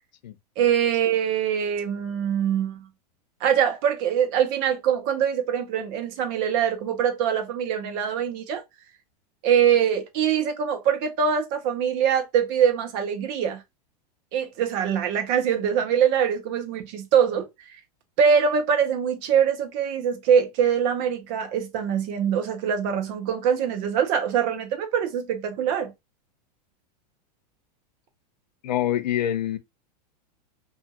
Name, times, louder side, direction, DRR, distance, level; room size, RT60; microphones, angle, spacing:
voice 1, 0.6-2.8 3.4-8.6 9.4-13.6 14.3-17.5 18.2-25.9, right 8 dB, 50° right, 0.9 m, -23 dB
voice 2, 28.6-29.6, left 11 dB, 85° left, 0.5 m, -25 dB
2.6 x 2.4 x 2.8 m
hypercardioid pair, 115°, 21 cm